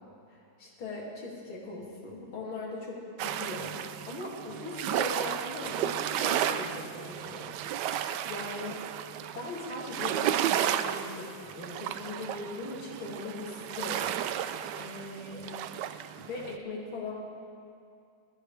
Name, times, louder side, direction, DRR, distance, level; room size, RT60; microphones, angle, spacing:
voice 1, 0.3-7.6 8.3-8.8 9.4-15.6 16.2-17.1, left 2 dB, 70° left, -5 dB, 3.6 m, -40 dB
sound 1, 3.2-16.6, right 10 dB, 75° right, 1.0 m, -33 dB
22.0 x 15.0 x 3.5 m, 2.4 s
omnidirectional pair, 2.4 m